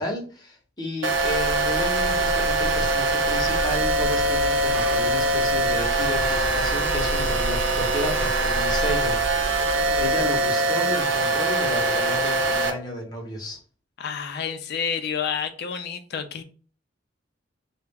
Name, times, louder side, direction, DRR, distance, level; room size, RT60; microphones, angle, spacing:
voice 1, 0.0-9.2 10.0-13.6, left 1 dB, 20° left, -1 dB, 0.7 m, -32 dB
sound 1, 1.0-12.7, right 2 dB, 80° right, 0.5 m, -23 dB
sound 2, 1.1-10.4, equal, 35° right, 0.8 m, -33 dB
voice 2, 14.0-16.4, left 7 dB, 60° left, 8 dB, 0.4 m, -29 dB
2.3 x 2.1 x 3.3 m, 0.41 s
head